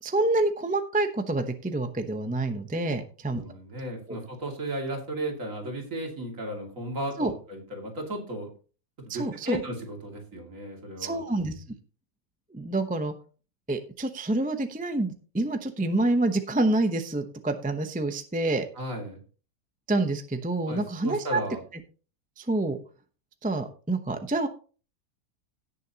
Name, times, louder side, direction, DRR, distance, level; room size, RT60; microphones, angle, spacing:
voice 1, 0.0-3.4 7.2-7.3 9.1-9.6 11.0-11.5 12.5-13.1 13.7-18.7 19.9-21.4 22.4-22.8 23.4-24.5, right 2 dB, 10° right, 7 dB, 0.6 m, -27 dB
voice 2, 3.3-8.5 9.0-11.2 18.8-19.2 20.7-21.6, right 1 dB, 60° right, 1 dB, 2.8 m, -35 dB
17.0 x 6.8 x 2.9 m, 0.38 s
omnidirectional pair, 1.6 m